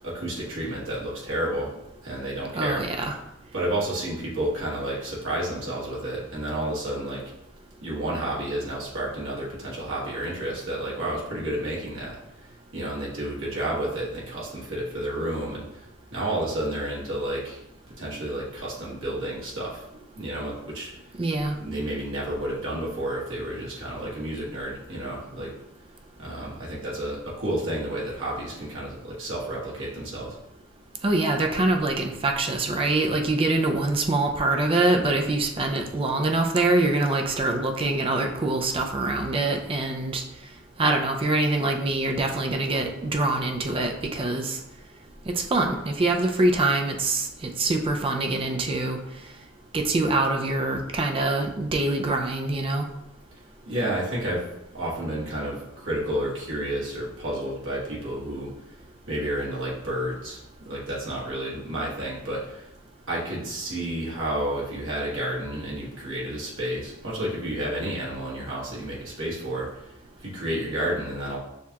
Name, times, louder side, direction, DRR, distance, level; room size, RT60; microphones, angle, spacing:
voice 1, 0.0-2.9 3.5-7.2 7.8-17.6 18.0-20.9 21.6-25.5 26.2-30.3 53.7-54.4 54.7-58.5 59.1-62.7 63.1-69.9 70.2-71.4, right 1 dB, 65° right, -6 dB, 1.5 m, -31 dB
voice 2, 2.5-3.1 21.2-21.5 31.0-40.2 40.8-44.6 45.3-47.3 47.6-49.0 49.7-52.8, right 2 dB, 25° right, 3 dB, 0.4 m, -24 dB
6.5 x 2.3 x 2.8 m, 0.86 s
head